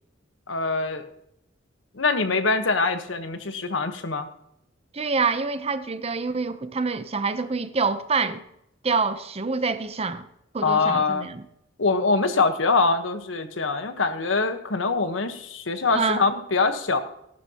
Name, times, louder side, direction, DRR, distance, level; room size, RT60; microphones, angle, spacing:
voice 1, 0.5-1.0 1.9-4.3 10.6-11.3 11.8-17.0, left 4 dB, 90° left, 1.2 m, -24 dB
voice 2, 4.9-8.4 8.8-10.3 10.5-11.4 15.9-16.2, right 4 dB, 35° right, 0.7 m, -26 dB
14.5 x 12.0 x 2.9 m
head